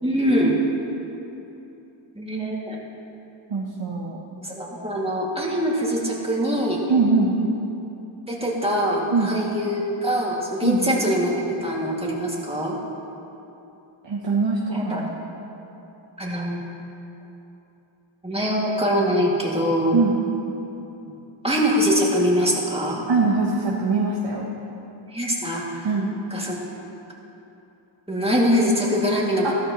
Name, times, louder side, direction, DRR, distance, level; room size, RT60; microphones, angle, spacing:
voice 1, 0.0-0.6 2.2-2.8 4.4-6.8 8.3-12.8 14.7-15.0 16.2-16.6 18.2-20.0 21.4-23.0 25.1-25.9 26.3-26.7 28.1-29.5, equal, 10° right, -4 dB, 2.3 m, -23 dB
voice 2, 3.5-4.2 6.9-7.3 9.1-9.4 10.6-10.8 14.0-15.3 19.9-20.1 23.1-24.5 25.8-26.1 29.4-29.5, right 4 dB, 65° right, -2 dB, 1.1 m, -22 dB
14.5 x 13.0 x 3.1 m, 2.9 s
wide cardioid pair, 45°, 48 cm